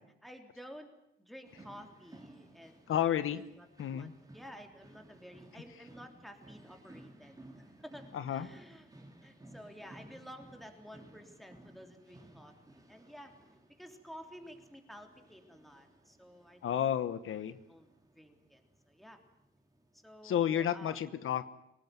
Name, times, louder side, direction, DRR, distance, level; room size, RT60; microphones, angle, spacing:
voice 1, 0.2-0.9 1.2-3.2 3.6-3.7 3.9-4.1 4.3-8.9 9.2-13.3 13.8-16.8 17.7-17.9 18.1-18.6 18.9-19.2 19.9-21.2, equal, ahead, 4 dB, 3.5 m, -52 dB
sound 1, 1.4-20.5, right 1 dB, 15° right, 3.4 m, -58 dB
voice 2, 2.9-3.4 3.8-4.1 8.1-8.5 16.6-17.6 20.2-21.4, left 10 dB, 90° left, 13 dB, 1.2 m, -31 dB
24.5 x 19.5 x 9.3 m, 0.81 s
wide cardioid pair, 120°, 21 cm